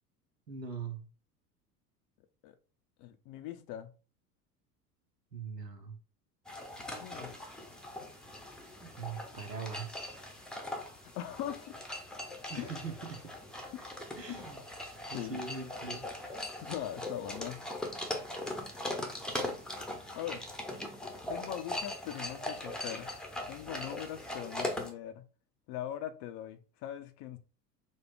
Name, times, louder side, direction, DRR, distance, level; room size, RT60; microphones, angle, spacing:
voice 1, 0.5-1.0 5.3-6.0 8.8-10.2 12.5-13.2 14.2-14.6 15.1-16.0, right 5 dB, 90° right, 1.0 m, -41 dB
voice 2, 3.0-3.9 6.9-7.3 11.0-11.8 12.6-12.7 15.1-15.4 16.6-17.6 20.1-20.4 21.3-23.1 23.5-25.2 25.7-27.4, left 11 dB, 40° left, 0.6 m, -41 dB
sound 1, 6.5-24.9, left 1 dB, ahead, 0.8 m, -40 dB
4.4 x 2.3 x 4.5 m
figure-of-eight pair, 75°, 47 cm